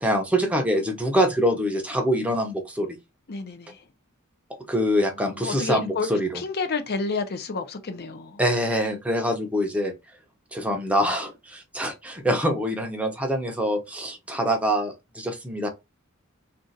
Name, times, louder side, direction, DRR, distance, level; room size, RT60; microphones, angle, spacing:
voice 1, 0.0-2.9 4.7-6.4 8.4-9.9 10.5-15.7, equal, 5° right, 0.6 m, -25 dB
voice 2, 3.3-3.8 5.2-6.1 6.3-8.4, left 4 dB, 50° left, 0.6 m, -30 dB
2.5 x 2.4 x 3.9 m
head